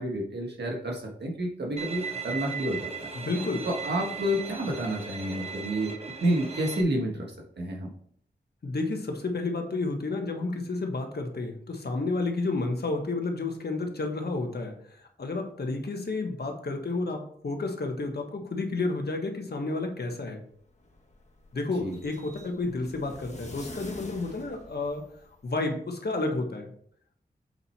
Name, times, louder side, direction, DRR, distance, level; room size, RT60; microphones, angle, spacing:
voice 1, 0.0-3.1 3.6-5.9 6.2-7.9 21.8-22.0, right 1 dB, 75° right, 0 dB, 1.5 m, -30 dB
Bowed string instrument, 1.8-6.8, right 5 dB, 35° right, 1.3 m, -37 dB
voice 2, 3.1-3.7 8.6-20.4 21.5-25.0 25.4-26.7, left 3 dB, 70° left, 3 dB, 1.5 m, -31 dB
sound 1, 20.5-25.5, left 2 dB, 40° left, 1.6 m, -46 dB
7.9 x 4.2 x 4.3 m, 0.62 s
cardioid pair, 55°, 18 cm